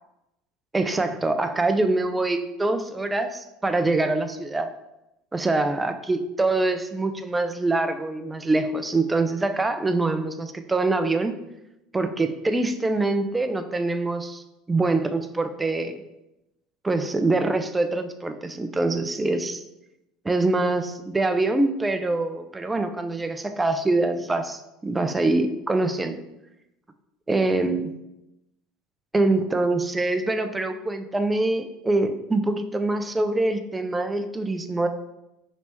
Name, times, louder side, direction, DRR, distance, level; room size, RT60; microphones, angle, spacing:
voice 1, 0.7-4.7 5.3-11.4 11.9-14.4 14.7-16.0 16.8-19.6 20.2-26.2 27.3-27.9 29.1-34.9, right 2 dB, 15° right, 8 dB, 0.3 m, -24 dB
3.2 x 2.9 x 3.0 m, 0.92 s
hypercardioid pair, 70°, 0 cm